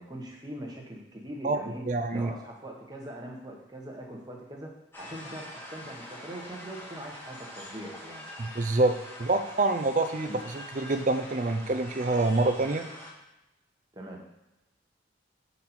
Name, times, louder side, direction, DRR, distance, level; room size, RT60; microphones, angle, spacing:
voice 1, 0.0-1.8 2.1-4.7 5.0-8.3 10.3-10.4 13.9-14.2, right 1 dB, 20° right, 0 dB, 1.0 m, -42 dB
voice 2, 1.9-2.3 8.4-12.9, right 2 dB, 40° right, 8 dB, 0.4 m, -26 dB
sound 1, 4.9-13.1, left 1 dB, 10° left, 0.9 m, -44 dB
7.2 x 4.1 x 4.3 m, 0.97 s
head